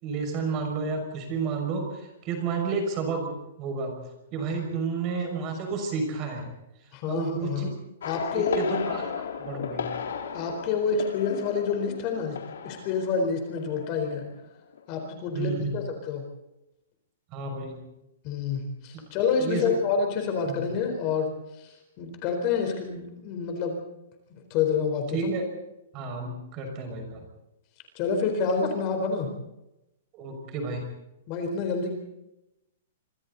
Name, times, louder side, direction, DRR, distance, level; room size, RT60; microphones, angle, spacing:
voice 1, 0.0-3.3 3.6-4.0 4.3-6.5 6.8-7.7 8.3-9.9 15.3-15.8 17.3-17.8 19.4-19.7 20.5-20.6 25.1-25.5 25.9-27.2 30.1-30.8, right 4 dB, 25° right, 3 dB, 6.1 m, -31 dB
voice 2, 6.9-7.7 8.0-8.8 10.3-12.4 12.6-14.2 14.9-16.2 18.2-21.3 21.6-23.7 24.5-25.3 27.9-29.3 31.3-31.9, left 5 dB, 30° left, 4 dB, 4.2 m, -28 dB
sound 1, 8.0-14.5 14.7-15.1, left 7 dB, 85° left, 3.8 m, -35 dB
27.0 x 26.0 x 4.1 m, 0.90 s
hypercardioid pair, 175°, 0 cm